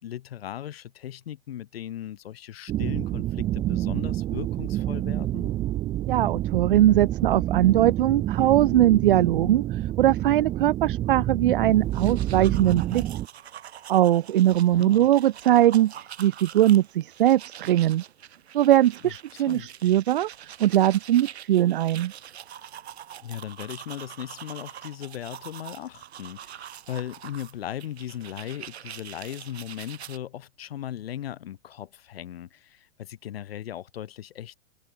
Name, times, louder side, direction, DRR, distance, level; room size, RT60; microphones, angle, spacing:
voice 1, 0.0-5.5 14.7-15.1 19.0-19.1 19.5-19.7 23.2-34.6, left 11 dB, 60° left, 2.3 m, -37 dB
sound 1, 2.7-13.3, right 14 dB, 10° right, 0.9 m, -28 dB
voice 2, 6.1-13.0 13.9-18.0 18.5-22.1, right 13 dB, 50° right, 0.5 m, -21 dB
sound 2, 11.8-30.2, right 10 dB, 70° right, 5.7 m, -44 dB
hypercardioid pair, 175°, 34 cm